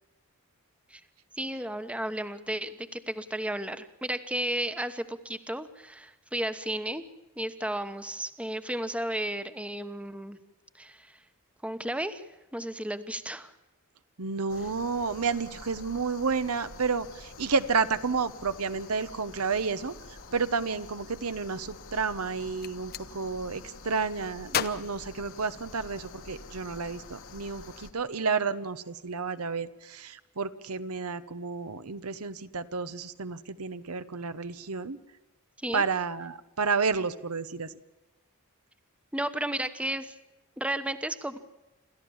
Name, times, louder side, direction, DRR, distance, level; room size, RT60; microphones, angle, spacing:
voice 1, 1.3-7.0 7.4-10.4 10.7-11.2 11.6-12.2 12.5-13.5 35.6-35.8 39.1-40.1 40.6-41.4, right 1 dB, 5° right, 11 dB, 1.1 m, -33 dB
voice 2, 14.2-19.9 20.3-35.0 35.7-37.7, right 5 dB, 75° right, 12 dB, 1.0 m, -31 dB
sound 1, 14.5-27.9, left 3 dB, 65° left, 1.8 m, -47 dB
Gunshot gunfire, 22.6-23.1 24.5-26.0, left 8 dB, 45° left, 0.8 m, -34 dB
28.0 x 13.5 x 7.2 m, 1.1 s
head